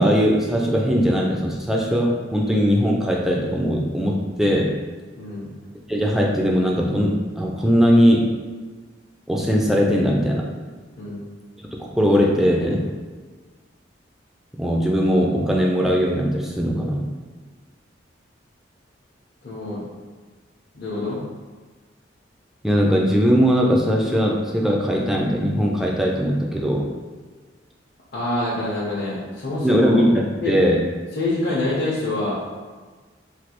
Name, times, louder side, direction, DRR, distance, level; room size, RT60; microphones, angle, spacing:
voice 1, 0.0-4.7 5.9-8.3 9.3-10.4 11.8-12.8 14.6-17.0 22.6-26.9 29.6-30.8, equal, ahead, -2 dB, 0.3 m, -19 dB
voice 2, 5.2-5.5 11.0-11.3 19.4-19.8 20.7-21.2 28.1-30.0 30.4-30.5 31.1-32.4, left 2 dB, 55° left, -9 dB, 0.6 m, -26 dB
3.2 x 2.3 x 2.9 m, 1.4 s
head